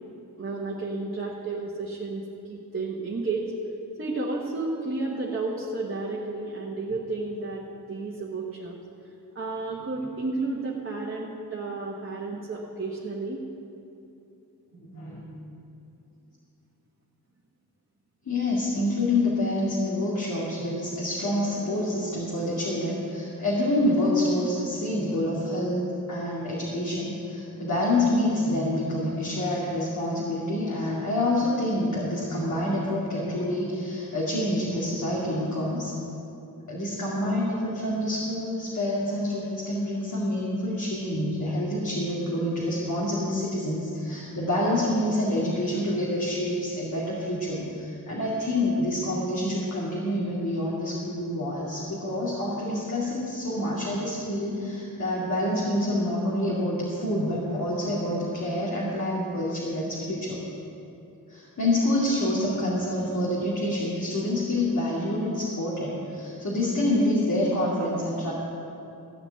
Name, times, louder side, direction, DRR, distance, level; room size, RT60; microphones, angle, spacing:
voice 1, 0.4-3.5 4.0-7.6 7.9-8.8 9.3-13.4, right 3 dB, 35° right, -3 dB, 1.3 m, -32 dB
voice 2, 14.7-15.3 18.3-35.9 36.7-60.4 61.3-68.3, left 1 dB, 50° left, -6 dB, 2.4 m, -27 dB
15.0 x 6.0 x 8.9 m, 2.8 s
wide cardioid pair, 125°, 37 cm